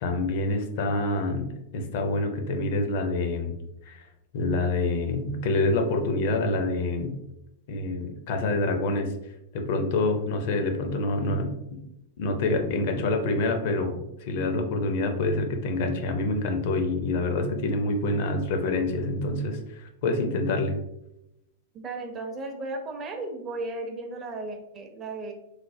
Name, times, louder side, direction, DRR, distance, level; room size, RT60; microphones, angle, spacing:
voice 1, 0.0-3.5 3.9-4.0 4.3-7.1 7.7-9.1 9.5-11.5 12.2-14.0 14.3-20.7, left 2 dB, 50° left, 5 dB, 0.4 m, -26 dB
voice 2, 21.7-25.3, right 2 dB, 25° right, 4 dB, 0.5 m, -35 dB
3.2 x 2.0 x 2.6 m, 0.88 s
figure-of-eight pair, 100°, 0 cm